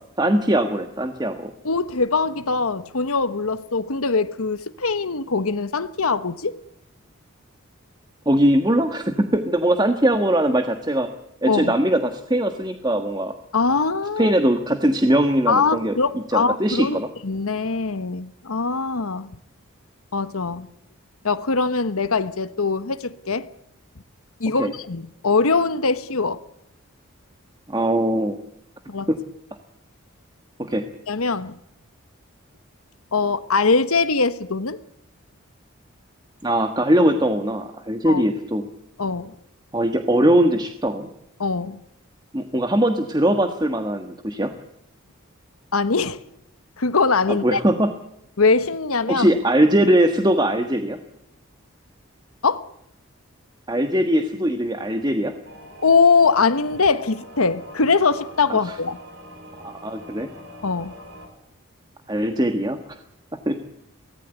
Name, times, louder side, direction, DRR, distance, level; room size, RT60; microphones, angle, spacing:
voice 1, 0.2-1.5 8.2-11.1 11.4-13.3 14.2-17.1 24.6-24.7 27.7-28.4 29.1-29.2 30.6-30.9 36.4-38.7 39.7-41.1 42.3-44.5 47.3-47.9 49.1-51.0 53.7-55.3 58.5-58.6 59.6-60.3 62.1-62.8 63.5-63.6, right 1 dB, 20° right, 1.4 m, -21 dB
voice 2, 1.6-6.5 11.5-11.7 13.5-14.3 15.5-17.0 17.2-19.3 20.1-20.7 21.2-23.5 24.4-26.4 28.9-29.1 31.1-31.5 33.1-34.8 38.0-38.2 39.0-39.3 41.4-41.8 45.7-46.2 46.8-47.6 48.4-49.3 52.4-52.6 55.8-59.0 60.6-60.9, left 4 dB, 85° left, 1.1 m, -22 dB
sound 1, 55.4-61.3, equal, 55° right, 6.9 m, -43 dB
24.0 x 18.5 x 8.1 m
head